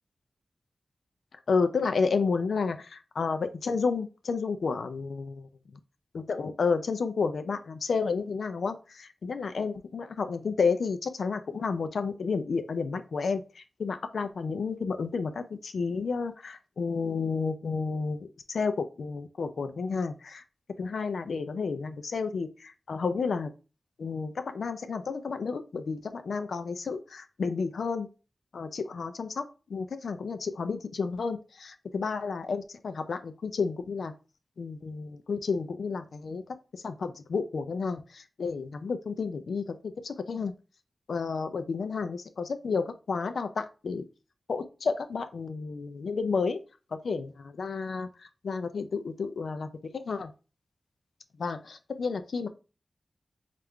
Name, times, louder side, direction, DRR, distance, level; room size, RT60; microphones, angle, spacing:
voice 1, 1.5-5.3 6.1-20.4 20.8-23.5 24.0-28.1 28.5-34.1 34.6-40.5 41.1-44.0 44.5-46.6 47.0-50.3 51.4-52.5, left 5 dB, 85° left, 9 dB, 0.4 m, -31 dB
3.5 x 2.4 x 4.4 m, 0.33 s
wide cardioid pair, 90°, 0 cm